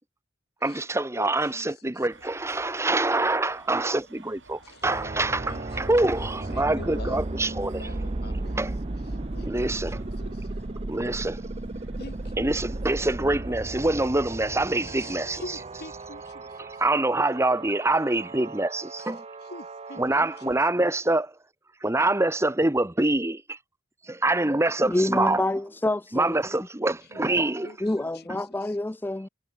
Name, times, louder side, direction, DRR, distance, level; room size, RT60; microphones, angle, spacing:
voice 1, 0.6-7.8 8.6-8.7 9.4-10.0 10.9-11.4 12.4-15.4 16.8-19.2 20.0-21.3 21.8-23.6 24.1-25.4 26.1-27.7, right 2 dB, 15° right, 1.0 m, -25 dB
voice 2, 1.2-2.1 4.6-4.9 5.4-8.6 9.0-10.7 12.0-12.8 14.8-16.9 19.0-20.5 27.1-27.2 27.6-28.8, left 2 dB, 60° left, 3.2 m, -46 dB
sound 1, 2.1-13.2, right 3 dB, 75° right, 4.7 m, -54 dB
sound 2, 4.8-20.6, right 2 dB, 35° right, 0.7 m, -35 dB
voice 3, 24.8-26.3 27.8-29.3, left 1 dB, 10° left, 0.4 m, -27 dB
head